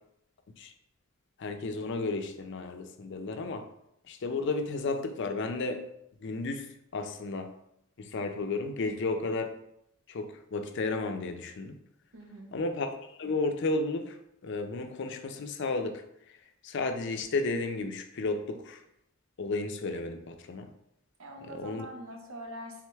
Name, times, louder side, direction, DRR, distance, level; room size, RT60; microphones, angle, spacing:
voice 1, 1.4-3.7 4.1-5.9 6.2-7.5 8.0-9.6 10.1-11.8 12.5-14.2 14.4-16.0 16.3-16.4 16.6-18.8 19.4-20.7 21.5-21.9, left 3 dB, 60° left, 6 dB, 0.4 m, -33 dB
voice 2, 12.1-12.5 21.2-22.9, equal, 90° right, 3 dB, 0.8 m, -43 dB
3.6 x 3.2 x 3.4 m, 0.77 s
head